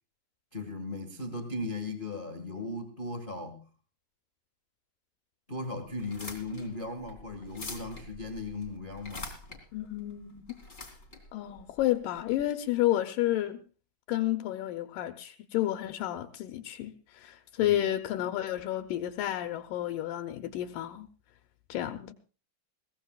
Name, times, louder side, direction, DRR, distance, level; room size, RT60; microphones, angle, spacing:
voice 1, 0.5-3.6 5.5-9.3 17.6-17.8, left 2 dB, 50° left, 6 dB, 0.6 m, -37 dB
sound 1, 6.0-12.4, left 3 dB, 20° left, 2.8 m, -45 dB
voice 2, 9.7-10.6 11.3-13.6 14.1-21.1 21.7-22.1, left 13 dB, 80° left, 7 dB, 2.4 m, -31 dB
21.5 x 17.0 x 2.3 m, 0.36 s
omnidirectional pair, 3.8 m